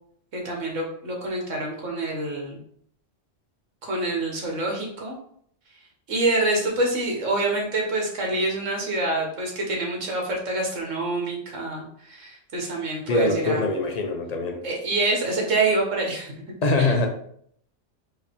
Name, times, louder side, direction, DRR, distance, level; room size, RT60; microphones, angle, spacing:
voice 1, 0.3-2.6 3.8-5.2 6.1-13.6 14.6-16.3 16.8-16.9, right 2 dB, 90° right, 0 dB, 1.6 m, -26 dB
voice 2, 13.1-14.6 16.6-17.1, left 2 dB, 40° left, 3 dB, 0.7 m, -23 dB
4.5 x 3.3 x 3.6 m, 0.65 s
omnidirectional pair, 1.3 m